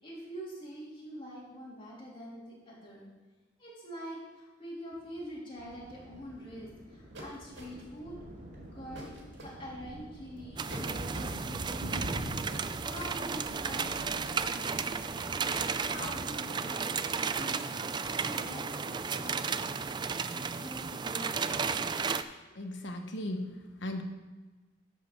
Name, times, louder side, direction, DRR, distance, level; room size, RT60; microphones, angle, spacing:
voice 1, 0.0-3.1 3.6-8.2 8.7-9.1 9.4-15.4 15.9-17.0 17.3-19.7 20.3-22.0, equal, 30° left, -5 dB, 3.1 m, -45 dB
sound 1, 5.6-16.3, right 1 dB, 40° right, 2.4 m, -44 dB
sound 2, 7.1-8.0 8.9-9.5 10.7-11.4 12.5-20.2, right 1 dB, 65° right, 2.4 m, -49 dB
sound 3, 10.6-22.2, right 5 dB, 25° right, 0.3 m, -34 dB
voice 2, 22.5-24.0, left 1 dB, 75° left, 5 dB, 1.2 m, -37 dB
11.0 x 5.1 x 6.6 m, 1.3 s
head